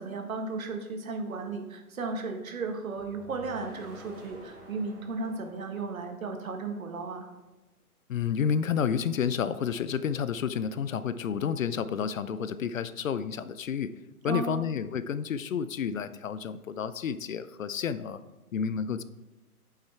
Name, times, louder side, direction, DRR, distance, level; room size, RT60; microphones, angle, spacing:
voice 1, 0.0-7.3 14.2-14.6, right 3 dB, 60° right, 4 dB, 1.6 m, -35 dB
sound 1, 2.9-7.0, left 1 dB, 5° right, 0.5 m, -51 dB
voice 2, 8.1-13.9 14.2-18.2 18.5-19.0, left 7 dB, 60° left, 14 dB, 0.6 m, -30 dB
8.5 x 5.8 x 4.5 m, 1.1 s
hypercardioid pair, 150°, 46 cm